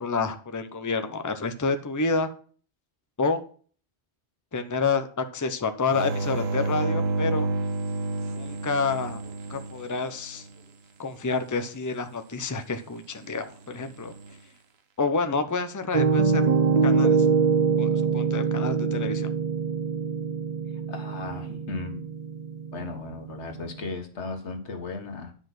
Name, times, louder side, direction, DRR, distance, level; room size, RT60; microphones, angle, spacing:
voice 1, 0.0-2.3 3.2-3.4 4.5-7.5 8.3-9.2 9.5-10.5 11.0-14.1 15.0-16.4 16.8-17.4 17.8-19.3, left 4 dB, 20° left, 8 dB, 0.8 m, -28 dB
sound 1, 5.9-10.5 13.8-14.3, right 3 dB, 65° right, 1.2 m, -30 dB
Piano, 15.9-23.8, right 5 dB, 45° right, 0.7 m, -24 dB
voice 2, 20.9-22.0 22.7-25.3, left 3 dB, 85° left, 5 dB, 1.8 m, -36 dB
10.0 x 5.4 x 5.9 m, 0.43 s
omnidirectional pair, 1.1 m